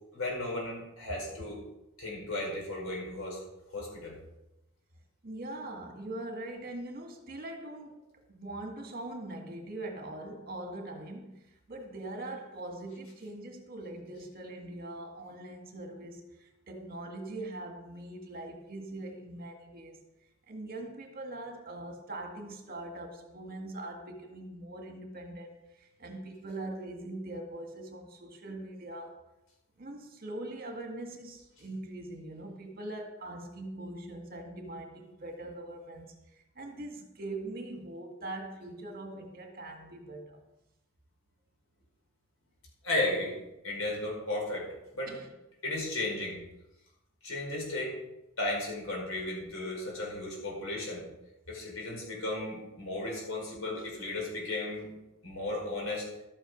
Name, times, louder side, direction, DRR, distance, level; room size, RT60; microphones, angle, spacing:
voice 1, 0.1-1.6 2.0-3.4 3.7-4.2 42.8-43.3 43.6-44.7 44.9-45.1 45.6-46.4 47.2-47.9 48.4-51.0 51.5-54.9 55.2-56.1, left 2 dB, 85° left, -2 dB, 5.4 m, -34 dB
voice 2, 5.2-8.0 8.3-11.4 11.7-20.0 20.5-29.1 29.8-36.1 36.6-40.4 45.1-45.3, right 2 dB, 45° right, 4 dB, 1.9 m, -42 dB
12.5 x 8.9 x 5.3 m, 0.93 s
head